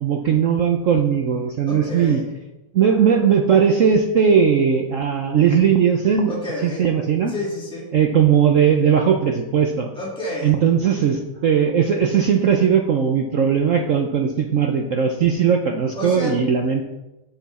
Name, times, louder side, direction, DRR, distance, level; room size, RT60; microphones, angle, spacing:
voice 1, 0.0-2.2 2.7-6.3 6.6-7.3 7.9-9.9 10.4-16.8, right 7 dB, 85° right, 3 dB, 0.7 m, -18 dB
voice 2, 1.7-2.2 6.3-6.8 7.3-7.9 9.9-10.6 15.9-16.3, left 1 dB, ahead, -6 dB, 2.6 m, -29 dB
9.7 x 7.0 x 4.2 m, 1.0 s
omnidirectional pair, 2.2 m